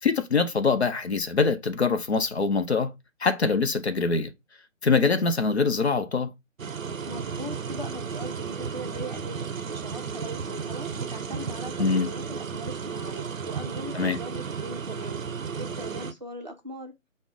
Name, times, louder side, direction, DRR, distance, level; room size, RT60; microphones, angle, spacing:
voice 1, 0.0-2.9 3.2-4.3 4.8-6.3 11.8-12.1 13.9-14.2, left 4 dB, 55° left, 0.6 m, -24 dB
sound 1, 6.6-16.1, right 6 dB, 80° right, 0.6 m, -34 dB
voice 2, 7.1-15.2 15.6-16.9, right 1 dB, 35° right, 0.5 m, -40 dB
5.2 x 2.1 x 3.5 m
figure-of-eight pair, 150°, 40 cm